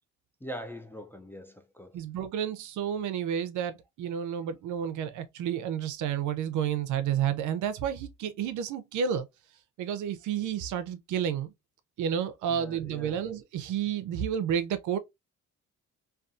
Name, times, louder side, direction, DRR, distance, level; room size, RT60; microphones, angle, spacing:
voice 1, 0.4-1.9 12.5-13.3, equal, 10° left, 0.3 m, -42 dB
voice 2, 1.9-9.3 9.8-11.5 12.0-15.0, right 8 dB, 75° right, 0.5 m, -31 dB
2.6 x 2.3 x 2.3 m
cardioid pair, 90°, 30 cm